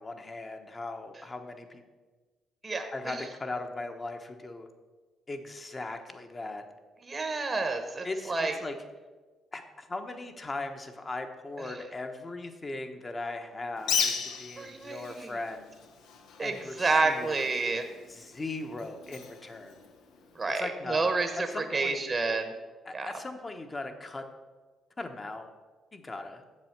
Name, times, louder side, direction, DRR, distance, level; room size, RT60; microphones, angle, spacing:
voice 1, 0.0-1.8 2.9-4.7 5.3-6.6 8.0-8.7 9.5-15.8 16.4-17.4 18.1-19.8 20.6-21.1 21.4-22.1 22.8-24.2 25.0-25.5 25.9-26.4, left 2 dB, 30° left, 6 dB, 1.0 m, -38 dB
voice 2, 2.6-3.2 7.0-8.6 11.7-11.8 14.6-15.3 16.4-17.8 20.3-22.5 22.9-23.1, right 3 dB, 30° right, 6 dB, 1.0 m, -29 dB
Bird, 13.8-20.4, left 6 dB, 85° left, 0.9 m, -37 dB
7.5 x 7.3 x 5.9 m, 1.3 s
cardioid pair, 90°, 0 cm